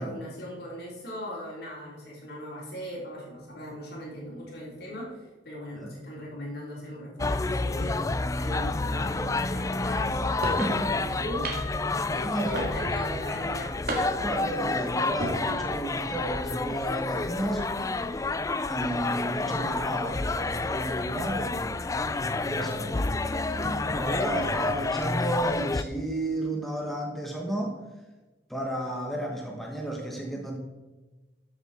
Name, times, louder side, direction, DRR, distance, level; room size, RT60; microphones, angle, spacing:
voice 1, 0.0-8.0 8.3-10.4 11.0-11.5 12.1-13.8, equal, 65° left, -3 dB, 3.6 m, -39 dB
sound 1, 7.2-25.8, left 3 dB, 20° left, 0.3 m, -29 dB
sound 2, 10.4-10.7 11.4-11.8 12.5-13.0 13.9-14.4 15.0-15.4, right 1 dB, 60° right, 2.0 m, -32 dB
voice 2, 10.5-11.0 12.2-12.6 14.2-17.7 18.7-21.8 22.4-27.8 28.5-30.6, right 1 dB, ahead, -1 dB, 1.3 m, -32 dB
13.0 x 7.4 x 4.3 m, 1.2 s
head